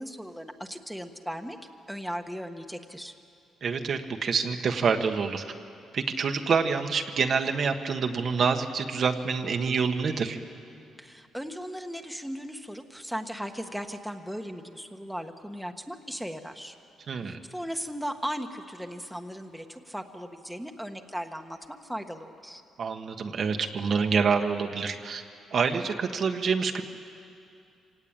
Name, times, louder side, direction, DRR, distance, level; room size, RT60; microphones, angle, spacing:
voice 1, 0.0-1.6 1.9-3.1 11.0-16.7 17.2-22.6, equal, ahead, 4 dB, 1.4 m, -37 dB
voice 2, 3.6-5.4 5.9-10.4 17.1-17.4 22.8-25.2 25.5-26.8, right 5 dB, 55° right, 5 dB, 1.4 m, -27 dB
25.0 x 17.5 x 8.9 m, 2.5 s
cardioid pair, 90°, 0 cm